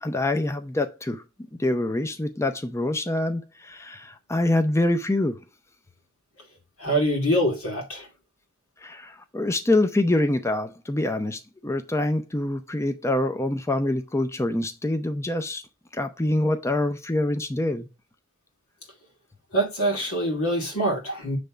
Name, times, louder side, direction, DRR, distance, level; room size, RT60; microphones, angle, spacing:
voice 1, 0.0-1.2 1.6-5.4 8.8-15.6 15.9-17.9, left 1 dB, 15° left, 0.5 m, -25 dB
voice 2, 6.8-8.1 19.5-21.4, right 1 dB, 90° left, 2.3 m, -25 dB
6.7 x 3.5 x 5.0 m
head